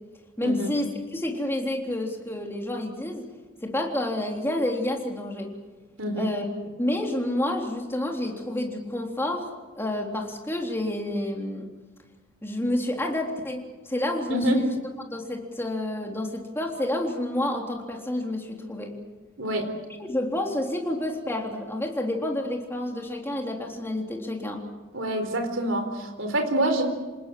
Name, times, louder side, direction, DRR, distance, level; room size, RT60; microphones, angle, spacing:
voice 1, 0.4-3.3 3.6-5.5 6.2-6.5 6.8-11.7 12.4-14.8 15.1-19.0 20.0-24.6, left 1 dB, 10° left, 1 dB, 3.6 m, -29 dB
voice 2, 14.3-14.6 19.4-19.7 24.9-26.8, right 1 dB, 65° right, 6 dB, 4.4 m, -26 dB
27.5 x 19.5 x 7.7 m, 1.3 s
head